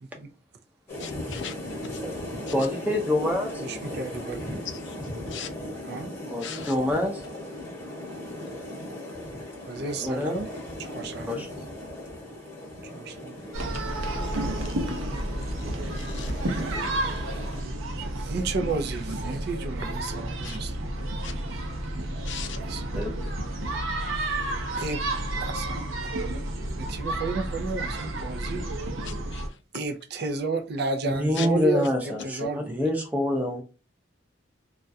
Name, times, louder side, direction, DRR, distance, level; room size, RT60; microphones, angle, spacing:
sound 1, 0.9-17.6, left 1 dB, 15° left, 1.0 m, -38 dB
voice 1, 1.0-1.5 1.8-2.0 4.9-5.0 5.3-5.5 6.4-6.7 16.0-16.3 20.4-20.6 21.2-21.3 22.3-22.6 29.1-29.4 31.4-31.5, left 8 dB, 60° left, 0.4 m, -38 dB
voice 2, 2.5-3.6 6.3-7.2 10.0-10.4 11.3-11.7 22.9-23.3 31.1-33.6, left 1 dB, 10° right, 0.6 m, -26 dB
voice 3, 3.6-4.8 5.8-6.1 9.6-10.5 10.8-11.5 12.8-13.3 16.3-16.4 18.0-20.9 22.6-23.0 24.8-25.1 25.4-26.4 26.8-28.6 29.7-32.7, right 3 dB, 55° right, 0.4 m, -32 dB
sound 2, 13.5-29.5, right 1 dB, 90° right, 0.7 m, -31 dB
2.4 x 2.1 x 2.6 m
head